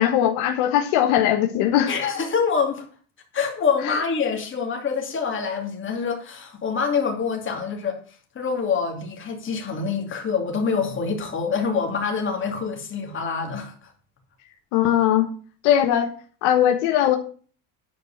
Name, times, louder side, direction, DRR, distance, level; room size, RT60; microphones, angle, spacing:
voice 1, 0.0-1.9 14.7-15.3 15.6-16.1 16.4-17.2, left 11 dB, 80° left, 1.4 m, -19 dB
voice 2, 1.9-2.9 3.3-8.0 8.3-13.9, left 5 dB, 30° left, 2.7 m, -26 dB
10.0 x 5.0 x 7.2 m
cardioid pair, 135°, 40 cm